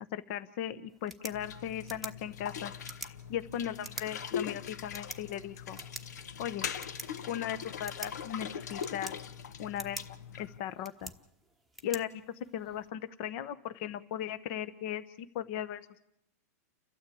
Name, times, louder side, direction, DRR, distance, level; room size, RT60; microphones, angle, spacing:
voice 1, 0.1-2.7 3.1-5.8 6.4-6.7 7.3-9.2 9.6-11.1 11.8-12.1 12.5-16.0, left 10 dB, 45° left, 13 dB, 0.9 m, -37 dB
sound 1, 0.9-12.9, right 2 dB, ahead, 1.1 m, -48 dB
sound 2, 1.3-10.6, left 7 dB, 80° left, 1.2 m, -41 dB
29.5 x 13.0 x 8.5 m, 0.78 s
hypercardioid pair, 150°, 9 cm